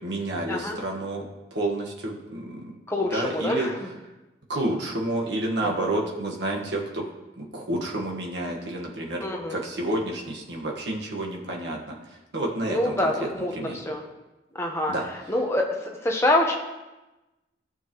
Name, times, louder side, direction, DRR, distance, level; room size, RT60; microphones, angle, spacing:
voice 1, 0.0-2.7 3.0-3.7 4.5-7.0 7.4-13.8 14.9-15.0, right 1 dB, 70° right, -1 dB, 1.5 m, -30 dB
voice 2, 2.9-3.7 5.6-5.7 9.2-9.6 12.7-13.5 13.9-14.0 14.6-14.9 15.3-15.7 16.0-16.6, left 1 dB, 15° left, 1 dB, 1.0 m, -25 dB
15.0 x 6.7 x 3.1 m, 1.1 s
head